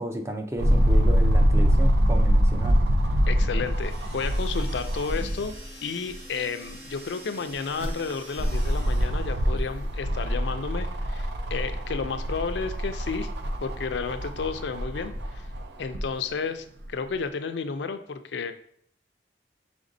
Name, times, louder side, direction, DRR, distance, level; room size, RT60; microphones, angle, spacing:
voice 1, 0.0-2.8, equal, 15° right, 5 dB, 0.4 m, -32 dB
sound 1, 0.6-5.6 6.1-6.2 7.5-16.1 16.8-16.9, equal, 75° right, 0.5 m, -24 dB
voice 2, 3.3-5.6 5.8-13.3 13.6-15.5 15.8-18.5, left 5 dB, 90° left, 9 dB, 0.4 m, -32 dB
sound 2, 3.6-9.5, equal, 35° right, 1.9 m, -46 dB
5.0 x 3.5 x 2.6 m, 0.64 s
head